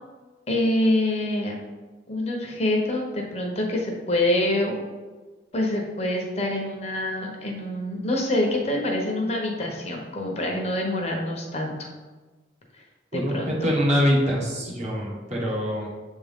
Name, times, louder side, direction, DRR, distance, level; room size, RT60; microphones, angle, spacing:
voice 1, 0.5-1.5 2.1-4.8 5.5-11.9 12.7-12.8 13.1-13.7, left 1 dB, 35° left, 0 dB, 0.9 m, -26 dB
voice 2, 13.1-15.9, equal, 40° right, -3 dB, 1.4 m, -24 dB
7.2 x 3.6 x 3.6 m, 1.3 s
head